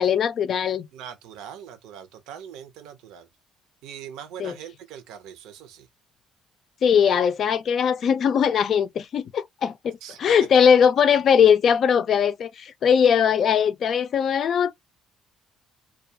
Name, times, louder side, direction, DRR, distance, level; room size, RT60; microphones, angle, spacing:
voice 1, 0.0-0.9 4.4-4.5 6.8-14.7, left 7 dB, 55° left, 0.4 m, -20 dB
voice 2, 0.9-3.3 3.8-5.9 10.0-10.2, right 9 dB, 85° right, 0.6 m, -41 dB
2.3 x 2.2 x 2.7 m
cardioid pair, 100°, 0 cm